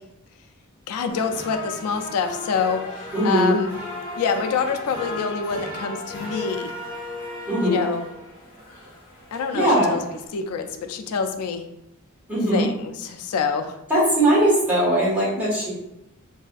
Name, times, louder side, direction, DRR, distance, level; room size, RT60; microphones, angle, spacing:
voice 1, 0.9-3.7 4.2-6.7 7.6-8.0 9.3-10.0 10.3-11.6 12.5-13.8, left 5 dB, 80° left, 7 dB, 0.4 m, -26 dB
sound 1, 1.1-10.3, left 2 dB, 40° left, 1.0 m, -36 dB
voice 2, 3.1-3.5 7.5-7.8 9.5-10.0 10.7-11.0 12.3-12.6 13.9-15.7, right 1 dB, 10° right, -9 dB, 1.3 m, -20 dB
3.3 x 2.6 x 2.3 m, 0.86 s
head